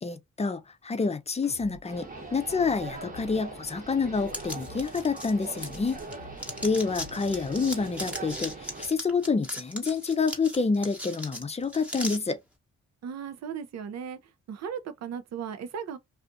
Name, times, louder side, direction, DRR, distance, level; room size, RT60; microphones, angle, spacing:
voice 1, 0.0-6.0 6.6-12.4, left 4 dB, 20° left, 0.5 m, -28 dB
sound 1, 1.4-7.6, left 5 dB, 65° left, 0.7 m, -49 dB
sound 2, 1.9-8.9, right 4 dB, 30° right, 1.0 m, -42 dB
sound 3, 4.3-6.1 6.4-12.2, equal, 5° right, 1.0 m, -38 dB
voice 2, 13.0-14.2 14.5-16.0, right 7 dB, 60° right, 0.6 m, -36 dB
2.5 x 2.4 x 2.5 m
supercardioid pair, 55°, 30 cm